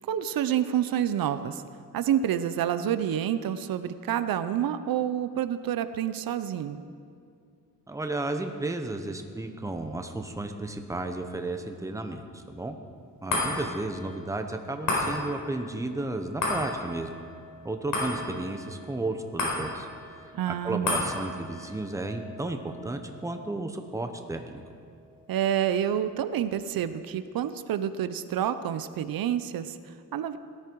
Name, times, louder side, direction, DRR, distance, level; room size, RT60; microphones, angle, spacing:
voice 1, 0.0-1.6 1.9-6.8 20.3-21.0 25.3-30.4, right 10 dB, 90° right, 12 dB, 0.7 m, -28 dB
voice 2, 7.9-12.7 13.2-17.1 17.6-19.9 20.2-24.6, right 2 dB, 10° right, 6 dB, 1.0 m, -33 dB
sound 1, 13.3-25.9 26.3-26.4, left 2 dB, 70° left, 4.8 m, -35 dB
18.0 x 13.0 x 4.7 m, 2.4 s
wide cardioid pair, 140°, 34 cm